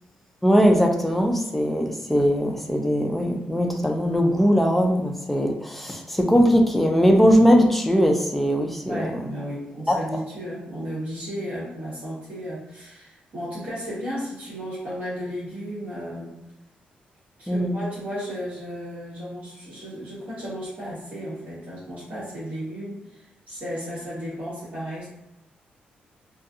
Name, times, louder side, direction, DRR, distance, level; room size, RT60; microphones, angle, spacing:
voice 1, 0.4-9.2 9.9-10.0 17.5-17.8, equal, 5° left, 2 dB, 0.3 m, -20 dB
voice 2, 8.9-16.3 17.4-25.1, equal, 50° right, -9 dB, 1.1 m, -34 dB
2.5 x 2.3 x 2.4 m, 0.92 s
wide cardioid pair, 140°, 3 cm